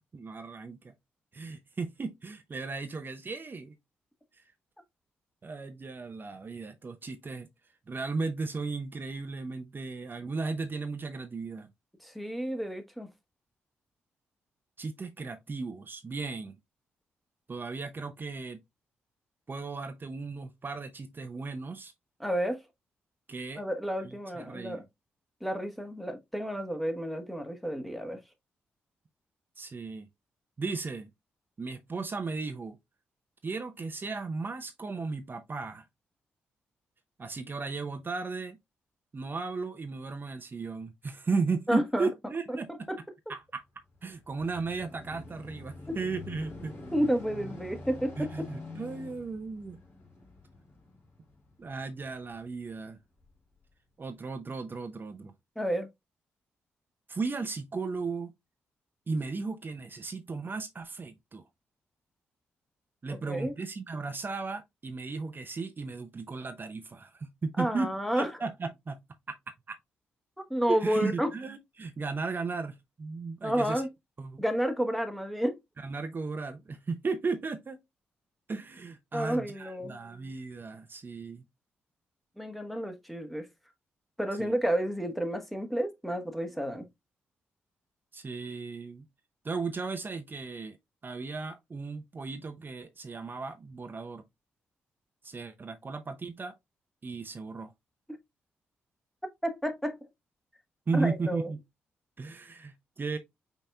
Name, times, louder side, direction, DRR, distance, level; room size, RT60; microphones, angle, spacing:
voice 1, 0.1-0.9 1.3-3.7 4.4-4.5 5.4-7.5 7.9-11.7 14.8-16.5 17.5-18.6 19.5-21.9 23.3-23.6 24.3-24.8 29.6-30.1 30.6-31.1 31.6-32.8 33.4-35.8 37.2-38.6 39.1-42.7 43.3-43.6 44.0-46.7 48.2-49.8 51.6-53.0 54.0-55.3 57.1-58.3 59.1-61.4 63.0-67.9 68.2-69.0 69.3-69.4 69.7-69.8 70.7-73.8 74.2-74.4 75.8-77.8 78.5-81.4 84.4-84.6 88.1-89.0 89.4-90.8 91.0-94.2 95.2-96.5 97.0-97.7 100.9-101.6 102.2-103.2, right 4 dB, 40° right, 0.7 m, -35 dB
voice 2, 12.0-13.1 22.2-22.6 23.5-24.8 25.4-28.2 41.7-42.1 42.7-43.0 45.9-46.0 46.9-48.5 55.6-55.9 63.3-63.5 67.6-68.3 70.4-71.3 73.4-73.9 74.4-75.6 79.1-80.0 82.4-83.5 84.2-86.9 99.4-100.0 100.9-101.5, equal, ahead, 1.2 m, -30 dB
sound 1, 43.8-52.6 53.2-53.3, left 2 dB, 50° left, 2.6 m, -46 dB
5.4 x 4.1 x 2.3 m
hypercardioid pair, 45°, 5 cm